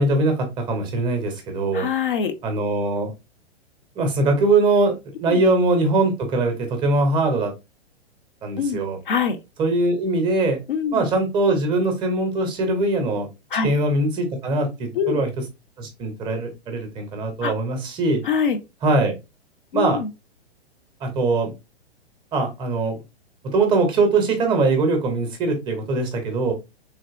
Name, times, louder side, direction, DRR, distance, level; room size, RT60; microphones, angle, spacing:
voice 1, 0.0-1.9 2.4-3.1 4.0-7.5 8.4-9.0 9.6-10.6 10.9-13.3 13.6-15.3 15.8-18.2 18.8-19.1 19.7-20.0 21.0-21.5 22.3-23.0 23.4-26.5, right 2 dB, 15° right, 0.5 m, -21 dB
voice 2, 1.7-2.4 5.3-5.4 8.6-8.8 9.1-9.4 10.7-11.1 13.5-13.7 14.9-15.2 17.4-17.5 18.2-18.6 19.7-20.1, left 6 dB, 55° left, 0.5 m, -23 dB
3.3 x 2.6 x 2.3 m
figure-of-eight pair, 110°, 32 cm